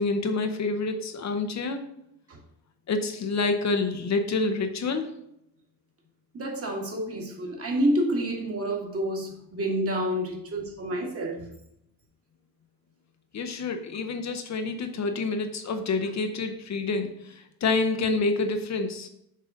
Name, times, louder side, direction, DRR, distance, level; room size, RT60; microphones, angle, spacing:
voice 1, 0.0-1.8 2.9-5.1 13.3-19.1, left 3 dB, 45° left, 6 dB, 0.8 m, -28 dB
voice 2, 6.3-11.5, right 1 dB, 40° right, -1 dB, 2.0 m, -28 dB
6.6 x 3.8 x 6.3 m, 0.77 s
cardioid pair, 135°, 38 cm